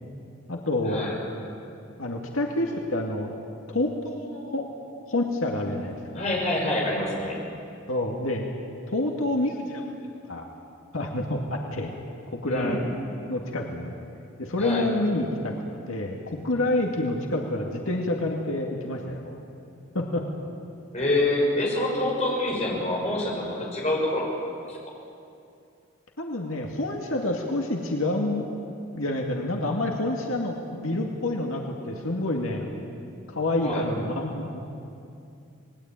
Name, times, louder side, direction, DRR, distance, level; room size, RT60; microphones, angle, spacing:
voice 1, 0.5-1.0 2.0-3.3 3.7-4.7 5.1-6.2 7.9-8.5 8.9-9.8 10.2-10.5 10.9-11.9 12.4-12.8 13.3-14.0 14.4-15.5 15.9-19.3 19.9-20.2 26.2-28.5 28.9-32.7 33.3-34.6, left 1 dB, 85° left, 1 dB, 2.3 m, -28 dB
voice 2, 6.1-7.4 12.4-12.8 14.6-14.9 20.9-24.8 33.6-33.8, left 1 dB, 35° left, -2 dB, 6.3 m, -26 dB
27.5 x 20.5 x 9.1 m, 2.6 s
head